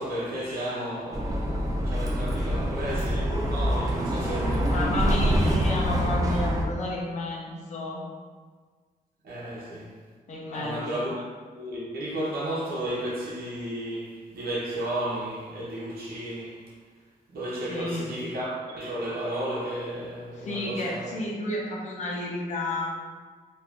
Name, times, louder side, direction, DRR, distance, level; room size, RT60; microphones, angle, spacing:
voice 1, 0.0-5.4 9.2-10.0 10.5-11.2 11.5-16.8 17.3-21.1, right 1 dB, 90° right, 0.8 m, -33 dB
Bus, 1.1-6.7, equal, 20° right, 0.4 m, -26 dB
voice 2, 4.7-8.0 10.3-10.8 17.7-18.1 20.4-22.9, left 1 dB, 50° left, 0.7 m, -31 dB
2.4 x 2.4 x 3.5 m
wide cardioid pair, 155°, 15 cm